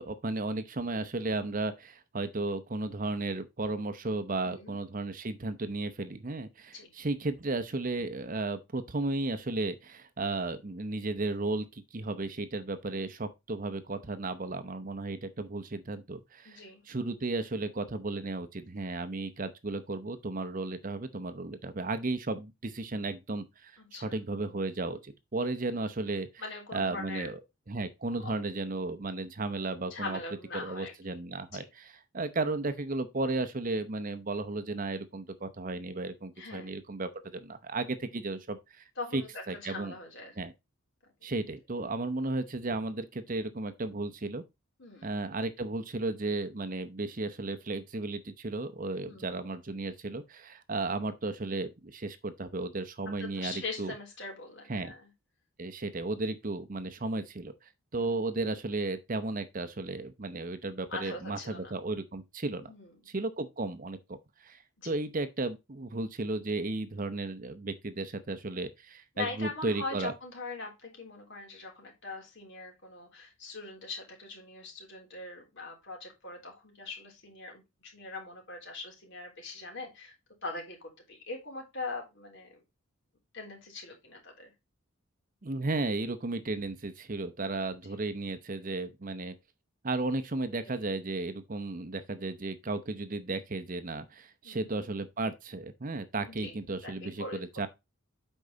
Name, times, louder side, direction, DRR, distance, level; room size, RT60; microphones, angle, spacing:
voice 1, 0.0-26.3 26.7-27.4 27.7-30.2 30.5-38.8 39.1-39.2 39.5-39.9 40.4-40.5 41.2-44.4 45.0-53.9 54.7-54.9 55.6-62.7 63.1-70.1 85.4-89.3 89.8-97.7, right 2 dB, 40° right, 0.7 m, -34 dB
voice 2, 4.4-4.8 6.7-6.9 16.5-16.8 23.8-24.2 26.4-27.3 28.2-28.3 29.9-31.2 31.5-31.7 36.4-36.7 39.0-40.4 41.2-41.3 44.8-45.1 49.0-49.4 53.2-55.1 57.9-58.2 60.9-61.8 62.5-62.9 64.8-65.0 69.2-80.1 80.4-82.6 83.3-84.5 87.9-88.0 94.4-94.7 96.3-96.6 96.8-97.4, left 3 dB, 55° left, 3.5 m, -42 dB
8.4 x 5.4 x 3.9 m
head